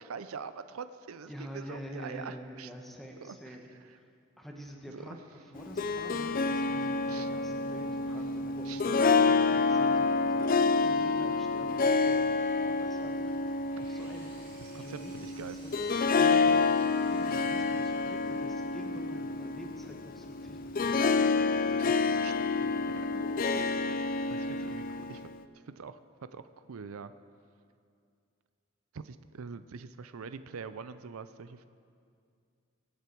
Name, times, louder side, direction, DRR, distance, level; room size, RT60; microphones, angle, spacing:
voice 1, 0.0-2.7 3.2-3.4 4.9-5.0 7.1-7.3 8.6-8.8 14.6-15.6 16.4-16.6 22.2-22.3 22.9-24.0 24.3-24.8 25.1-25.2 25.7-26.0 26.3-27.1 28.9-31.6, right 5 dB, 85° right, 12 dB, 0.5 m, -44 dB
voice 2, 1.3-4.1 4.4-14.3 14.7-15.7 16.2-22.8 24.6-24.7, equal, ahead, 0 dB, 1.3 m, -47 dB
Harp, 5.6-25.4, left 4 dB, 40° left, 0.4 m, -28 dB
Bowed string instrument, 6.3-10.5, equal, 60° left, 2.8 m, -52 dB
Engine, 13.3-19.0, right 2 dB, 25° right, 4.4 m, -56 dB
23.5 x 8.1 x 4.6 m, 2.3 s
head